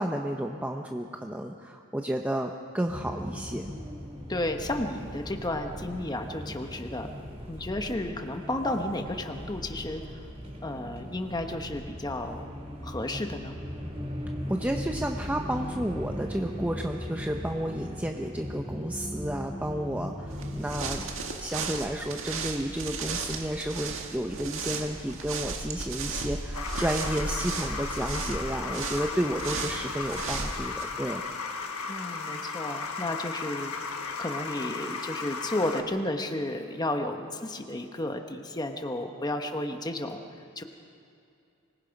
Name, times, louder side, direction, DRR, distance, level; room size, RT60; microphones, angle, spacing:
voice 1, 0.0-3.7 14.5-21.1 21.4-31.2, right 1 dB, 5° right, 3 dB, 0.8 m, -32 dB
sound 1, 2.9-21.0, equal, 30° right, 3.7 m, -38 dB
voice 2, 4.3-7.1 7.5-10.0 10.6-12.5 12.8-13.5 31.9-33.7 34.2-40.2 40.6-40.7, left 1 dB, 20° left, 5 dB, 1.1 m, -32 dB
sound 2, 20.3-30.8, right 4 dB, 65° right, 1.9 m, -35 dB
sound 3, 26.5-35.8, left 4 dB, 85° left, 1.4 m, -35 dB
25.5 x 19.5 x 5.3 m, 2.6 s
head